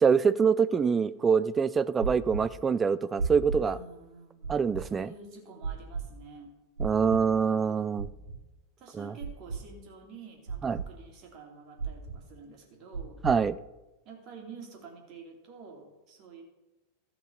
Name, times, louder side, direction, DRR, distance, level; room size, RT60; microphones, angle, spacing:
voice 1, 0.0-3.8 4.5-5.1 6.8-8.1 9.0-9.1 10.6-10.8 13.2-13.5, right 6 dB, 20° right, 17 dB, 0.4 m, -25 dB
sound 1, 2.0-2.4 3.2-3.6 4.4-4.8 5.6-6.0 6.8-7.2 8.0-8.4 9.2-9.6 10.5-10.9 11.8-12.2 12.9-13.4, right 5 dB, 70° right, 3.3 m, -33 dB
voice 2, 3.6-6.5 7.9-8.3 8.8-13.2 14.0-16.4, right 4 dB, 40° right, 0 dB, 3.1 m, -49 dB
14.5 x 6.0 x 5.6 m, 1.1 s
figure-of-eight pair, 90°, 0 cm